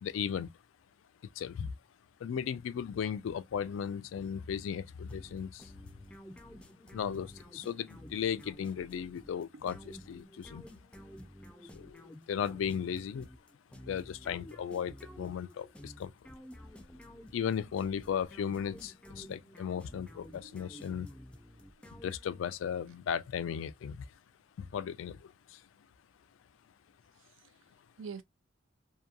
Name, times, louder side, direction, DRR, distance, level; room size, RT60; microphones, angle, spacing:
voice 1, 0.0-0.5 1.4-1.7 2.2-5.7 6.9-9.8 10.1-10.6 11.7-13.3 13.7-16.1 17.3-21.1 22.0-24.1 24.6-25.6, left 8 dB, 85° left, 0.3 m, -36 dB
sound 1, 5.1-22.6, equal, 5° left, 0.4 m, -51 dB
voice 2, 8.1-8.5 9.5-9.6 20.3-21.0 21.8-21.9 27.2-27.7 28.0-28.2, right 5 dB, 85° right, 0.4 m, -49 dB
2.8 x 2.2 x 2.2 m
head